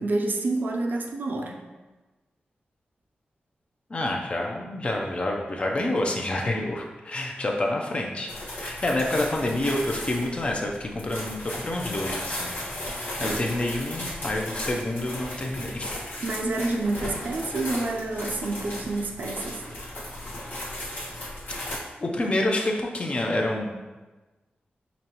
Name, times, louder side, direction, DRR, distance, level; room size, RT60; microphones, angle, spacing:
voice 1, 0.0-1.6 8.7-8.8 13.2-13.4 16.2-19.6, right 2 dB, 60° right, 2 dB, 0.5 m, -28 dB
voice 2, 3.9-8.3 8.6-12.5 13.2-16.0 22.0-23.8, left 1 dB, 35° left, 1 dB, 0.5 m, -28 dB
sound 1, 8.3-21.8, left 1 dB, 70° left, 1.3 m, -35 dB
5.1 x 3.0 x 2.9 m, 1.2 s
wide cardioid pair, 155°, 4 cm